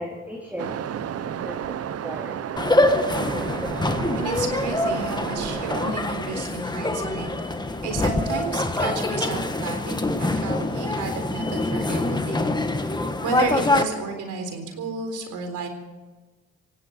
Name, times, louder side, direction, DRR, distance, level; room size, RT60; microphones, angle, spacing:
voice 1, 0.0-2.4, equal, 5° right, 0 dB, 2.7 m, -37 dB
Waves surf, 0.6-5.9, right 9 dB, 55° right, 0.8 m, -32 dB
sound 1, 2.6-13.8, left 2 dB, 15° left, 1.5 m, -25 dB
voice 2, 4.1-7.3 7.8-15.7, right 4 dB, 80° right, 5 dB, 4.0 m, -32 dB
18.0 x 17.0 x 4.5 m, 1.2 s
cardioid pair, 90°, 30 cm